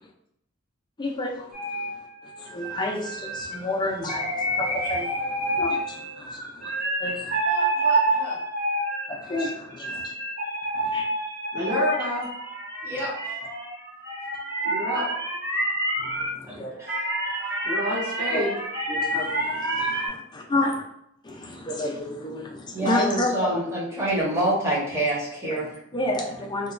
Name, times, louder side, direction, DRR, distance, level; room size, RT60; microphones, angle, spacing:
voice 1, 1.0-1.8 2.4-6.7 7.0-7.4 9.1-10.1 10.7-11.0 16.0-16.7 18.3-18.4 18.9-20.8 21.2-23.6 25.4-25.6 25.9-26.7, left 2 dB, 20° left, 0 dB, 0.3 m, -30 dB
sound 1, 1.5-16.3 16.9-20.1, right 1 dB, 40° right, 1.1 m, -28 dB
voice 2, 7.4-8.4 12.8-13.4 16.5-17.0 22.7-25.8, right 1 dB, 10° right, -5 dB, 0.7 m, -27 dB
voice 3, 11.5-12.3 14.6-15.1 17.6-18.5, equal, 55° right, -6 dB, 1.4 m, -28 dB
2.9 x 2.2 x 2.4 m, 0.77 s
head